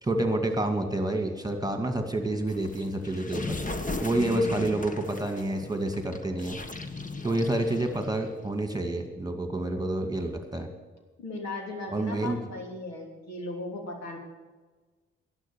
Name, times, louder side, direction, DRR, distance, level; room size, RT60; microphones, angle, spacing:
voice 1, 0.0-3.6 4.0-6.6 7.2-10.7 11.9-12.4, right 1 dB, 15° right, 5 dB, 2.2 m, -28 dB
sound 1, 2.5-8.4, left 2 dB, 25° left, 1.5 m, -37 dB
voice 2, 4.2-4.8 11.2-14.2, left 2 dB, 65° left, 1 dB, 3.2 m, -37 dB
11.5 x 11.0 x 7.1 m, 1.3 s
hypercardioid pair, 40°, 29 cm